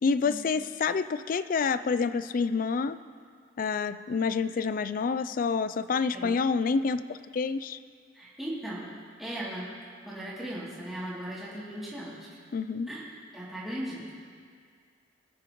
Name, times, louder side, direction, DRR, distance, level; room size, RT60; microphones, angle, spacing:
voice 1, 0.0-3.0 3.6-7.8 12.5-12.9, left 5 dB, 50° left, 13 dB, 0.3 m, -28 dB
voice 2, 8.1-8.9 9.2-9.7 10.1-12.1 12.9-13.0 13.3-14.1, right 1 dB, ahead, -10 dB, 2.7 m, -37 dB
21.0 x 8.5 x 3.1 m, 2.1 s
head